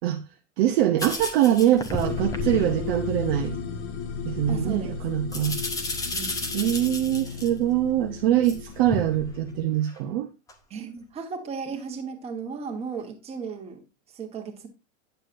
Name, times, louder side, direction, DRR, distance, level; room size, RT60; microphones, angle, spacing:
voice 1, 0.6-3.6 4.2-5.6 6.5-10.3, right 12 dB, 45° right, 0.8 m, -23 dB
sound 1, 1.0-2.9 3.6-4.1 5.3-7.5 8.4-9.4 9.9-10.0 10.5-10.6 11.7-11.8, left 2 dB, 10° left, 0.7 m, -33 dB
sound 2, 2.0-9.7, left 5 dB, 60° left, 1.4 m, -34 dB
voice 2, 4.5-5.0 6.1-6.6 10.7-13.8 14.1-14.7, right 5 dB, 15° right, 1.3 m, -35 dB
9.1 x 7.3 x 2.6 m
supercardioid pair, 160°, 37 cm